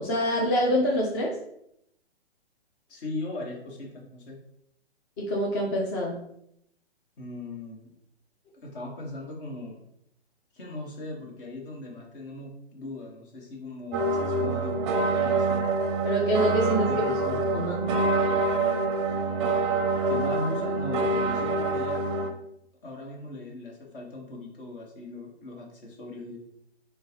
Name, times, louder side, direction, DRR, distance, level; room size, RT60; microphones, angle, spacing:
voice 1, 0.0-1.4 5.2-6.1 16.0-17.1 17.4-17.9, equal, 20° left, -2 dB, 0.5 m, -26 dB
voice 2, 2.9-4.4 7.2-8.0 8.6-9.8 10.5-15.6 16.7-17.4 20.1-22.0 22.8-26.4, left 2 dB, 55° left, -1 dB, 1.6 m, -39 dB
sound 1, 13.9-22.3, right 3 dB, 25° right, 0.5 m, -26 dB
6.6 x 2.4 x 3.0 m, 0.75 s
hypercardioid pair, 140°, 33 cm